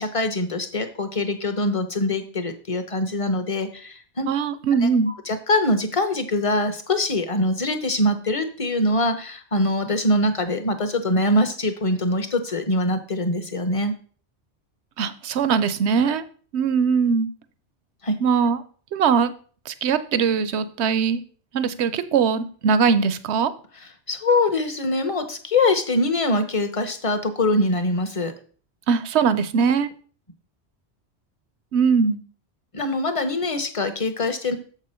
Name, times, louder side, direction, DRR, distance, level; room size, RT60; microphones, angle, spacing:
voice 1, 0.0-4.3 4.8-13.9 18.0-18.2 23.7-28.3 32.7-34.6, left 1 dB, 30° left, 8 dB, 0.9 m, -23 dB
voice 2, 4.3-5.1 15.0-16.2 16.5-17.3 18.2-18.6 18.9-19.3 19.7-21.2 21.5-23.5 28.9-29.9 31.7-32.2, right 6 dB, 80° right, 13 dB, 0.9 m, -21 dB
7.1 x 6.1 x 4.4 m, 0.42 s
omnidirectional pair, 1.1 m